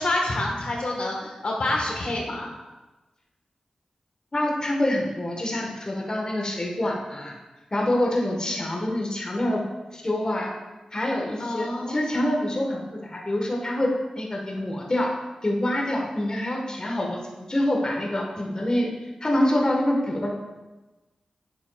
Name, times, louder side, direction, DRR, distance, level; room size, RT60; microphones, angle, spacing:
voice 1, 0.0-2.5 11.4-12.3, left 2 dB, 70° left, -1 dB, 1.4 m, -28 dB
voice 2, 4.3-7.4 7.7-9.6 9.9-10.5 10.9-15.1 15.4-18.9 19.2-20.3, left 1 dB, 35° left, -1 dB, 1.3 m, -26 dB
7.4 x 7.3 x 2.3 m, 1.1 s
cardioid pair, 50°, 2 cm